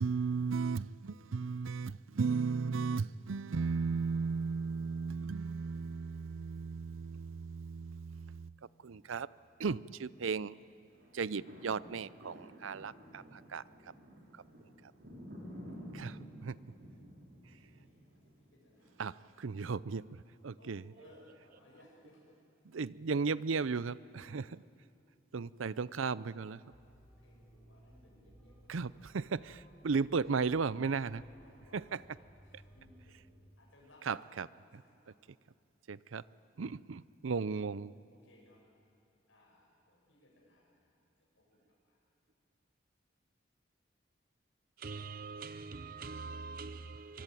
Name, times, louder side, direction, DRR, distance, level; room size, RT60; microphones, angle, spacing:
voice 1, 0.0-8.5 8.8-9.3 9.6-10.5 11.1-13.6 15.9-16.5 19.0-20.8 22.7-24.6 25.3-26.6 28.7-31.2 31.7-32.0 34.1-34.5 34.7-34.8 35.9-36.2 36.6-37.9, right 5 dB, 90° right, 0.6 m, -35 dB
sound 1, 10.9-19.1 19.7-19.8, equal, 65° right, 5.7 m, -51 dB
voice 2, 17.2-19.3 20.6-22.4 25.8-25.9 27.2-29.0 29.4-29.5 30.8-31.0 31.3-33.3 33.6-35.3 38.1-38.7 39.3-40.9 41.3-42.0, left 1 dB, 85° left, 6.3 m, -64 dB
sound 2, 26.7-33.3, equal, 5° left, 5.7 m, -60 dB
voice 3, 44.8-47.2, right 4 dB, 45° right, 0.6 m, -44 dB
25.0 x 24.0 x 9.2 m
head